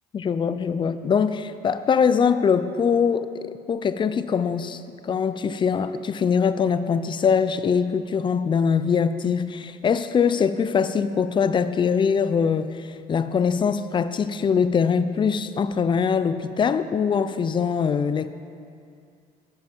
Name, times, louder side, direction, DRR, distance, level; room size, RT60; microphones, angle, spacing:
voice 1, 0.1-12.8 13.1-18.3, left 6 dB, 30° left, 12 dB, 0.3 m, -22 dB
10.0 x 5.7 x 4.5 m, 2.4 s
cardioid pair, 110°, 17 cm